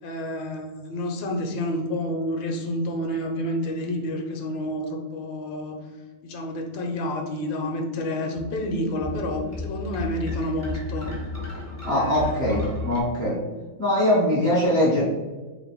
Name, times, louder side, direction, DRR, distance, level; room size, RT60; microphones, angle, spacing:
voice 1, 0.0-5.8 6.2-11.1 11.9-12.4, left 1 dB, 80° left, 3 dB, 1.4 m, -29 dB
sound 1, 8.4-13.0, left 2 dB, 15° left, 0.5 m, -33 dB
voice 2, 11.8-13.4 13.8-15.0, left 1 dB, 45° right, -6 dB, 0.9 m, -22 dB
3.3 x 2.9 x 4.3 m, 1.3 s
omnidirectional pair, 2.0 m